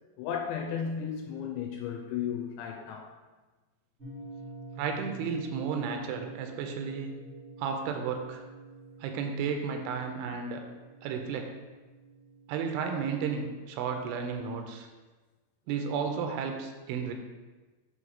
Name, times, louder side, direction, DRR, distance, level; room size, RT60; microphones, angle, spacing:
voice 1, 0.2-3.1, left 7 dB, 85° left, 1 dB, 2.8 m, -34 dB
sound 1, 4.0-14.2, right 2 dB, 65° right, 0.7 m, -48 dB
voice 2, 4.8-7.1 7.6-8.4 9.0-10.6 11.0-11.5 12.5-14.9 15.7-17.1, right 6 dB, 85° right, 4 dB, 3.1 m, -33 dB
7.6 x 3.2 x 6.2 m, 1.3 s
omnidirectional pair, 5.4 m